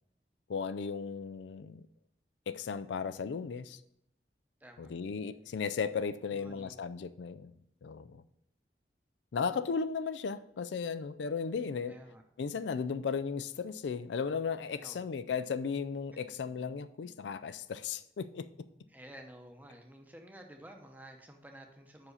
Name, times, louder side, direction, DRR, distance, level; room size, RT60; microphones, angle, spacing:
voice 1, 0.5-1.8 2.5-3.8 4.8-7.5 7.8-8.2 9.3-11.9 12.4-18.5, left 5 dB, 90° left, 12 dB, 0.4 m, -35 dB
voice 2, 4.6-4.9 6.3-6.8 11.9-12.2 14.8-15.0 16.1-16.2 18.9-22.1, right 1 dB, 10° right, 3 dB, 0.8 m, -52 dB
5.6 x 4.8 x 6.4 m, 0.76 s
head